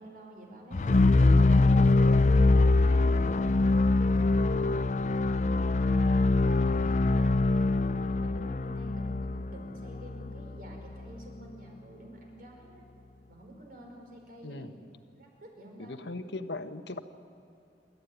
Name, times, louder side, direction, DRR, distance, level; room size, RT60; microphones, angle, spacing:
voice 1, 0.0-4.7 5.7-6.2 7.8-12.8 13.3-14.8 15.1-16.0, right 1 dB, 50° right, 1 dB, 5.0 m, -49 dB
sound 1, 0.7-10.8, left 2 dB, 40° left, 0.5 m, -23 dB
voice 2, 14.4-14.8 15.8-17.0, left 2 dB, 80° left, 8 dB, 1.3 m, -39 dB
28.5 x 13.5 x 9.4 m, 2.8 s
head